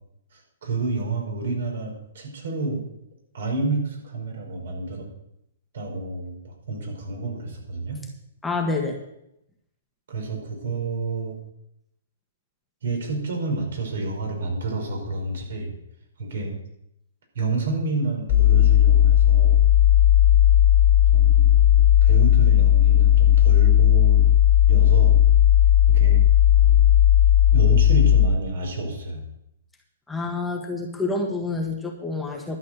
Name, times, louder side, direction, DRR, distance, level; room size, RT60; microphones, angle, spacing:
voice 1, 0.3-2.8 3.3-5.1 5.7-8.0 10.1-11.4 12.8-15.7 16.2-16.5 17.3-19.7 21.1-21.5 22.0-24.3 24.7-25.2 25.9-26.2 27.5-29.2, right 3 dB, 70° right, 1 dB, 5.4 m, -29 dB
voice 2, 8.4-9.0 30.1-32.6, left 3 dB, 5° left, 1 dB, 1.7 m, -27 dB
sound 1, 18.3-28.3, left 11 dB, 50° left, 1.9 m, -16 dB
12.0 x 8.2 x 6.7 m, 0.80 s
hypercardioid pair, 135°, 0 cm